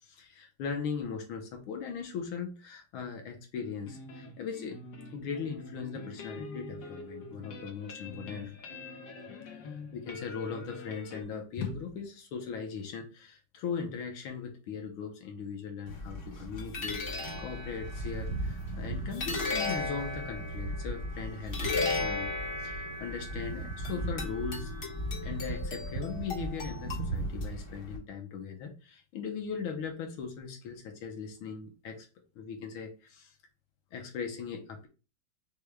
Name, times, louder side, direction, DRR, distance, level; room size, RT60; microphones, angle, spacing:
voice 1, 0.1-4.8 5.1-8.6 9.5-22.3 22.6-24.7 25.2-32.1 32.3-33.3 33.9-34.9, left 6 dB, 85° left, 3 dB, 1.7 m, -39 dB
sound 1, 3.5-11.2, left 3 dB, 65° left, 1.6 m, -45 dB
sound 2, 15.9-28.0, left 1 dB, 40° left, 1.3 m, -35 dB
6.5 x 2.3 x 3.3 m, 0.32 s
omnidirectional pair, 2.2 m